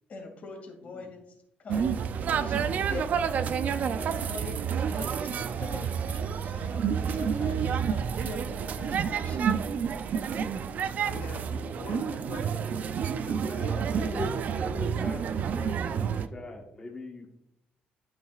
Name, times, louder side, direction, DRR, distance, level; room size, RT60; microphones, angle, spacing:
voice 1, 0.1-1.2 1.6-3.1 3.6-9.5 13.6-13.8, left 3 dB, 45° left, 1 dB, 2.3 m, -43 dB
sound 1, 1.7-16.3, right 7 dB, 50° right, 0.4 m, -29 dB
voice 2, 11.1-12.8 13.2-14.3, left 4 dB, 60° left, 0 dB, 1.0 m, -44 dB
voice 3, 13.6-17.3, left 2 dB, 20° left, -1 dB, 1.3 m, -40 dB
12.0 x 5.5 x 2.4 m, 0.79 s
cardioid pair, 130°, 3 cm